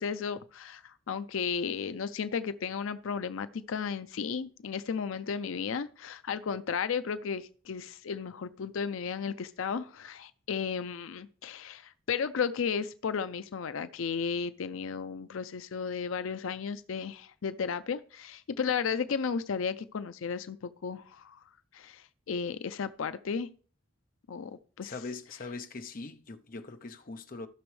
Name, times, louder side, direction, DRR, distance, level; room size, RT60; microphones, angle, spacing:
voice 1, 0.0-21.4 21.7-23.5 24.3-24.5 24.8-24.9, left 6 dB, 85° left, 0.5 m, -34 dB
voice 2, 24.8-27.5, left 3 dB, 45° left, 0.7 m, -41 dB
15.5 x 6.1 x 3.2 m
head